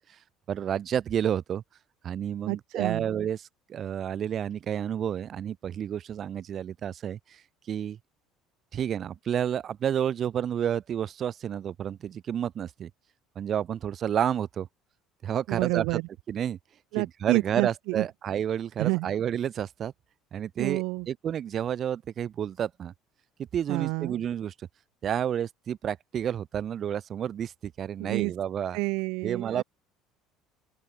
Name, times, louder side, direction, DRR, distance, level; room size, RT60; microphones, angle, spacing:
voice 1, 0.5-1.6 2.0-3.4 3.7-7.4 7.7-8.0 8.7-12.9 13.4-14.7 15.2-16.0 16.3-16.6 16.9-19.9 20.3-22.9 23.5-24.5 25.0-28.8 29.2-29.6, right 9 dB, 30° right, 1.7 m, -30 dB
voice 2, 2.5-3.1 15.5-16.0 16.9-18.1 18.8-19.1 20.6-21.1 23.7-24.2 28.0-28.3 28.7-29.6, right 27 dB, 70° right, 0.7 m, -29 dB
open air
cardioid pair, 180°, 0 cm